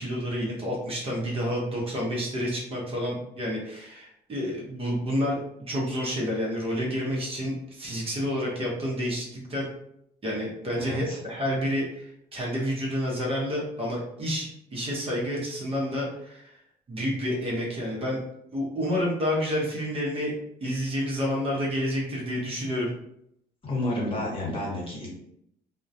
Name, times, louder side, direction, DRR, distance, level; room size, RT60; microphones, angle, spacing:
voice 1, 0.0-5.4 5.7-9.7 10.2-16.6 16.9-18.2 18.5-20.3 20.6-22.9, equal, 35° right, -3 dB, 0.8 m, -29 dB
voice 2, 10.8-11.2 23.6-25.1, left 1 dB, 30° left, -4 dB, 1.0 m, -30 dB
2.2 x 2.1 x 2.6 m, 0.75 s
cardioid pair, 110°, 17 cm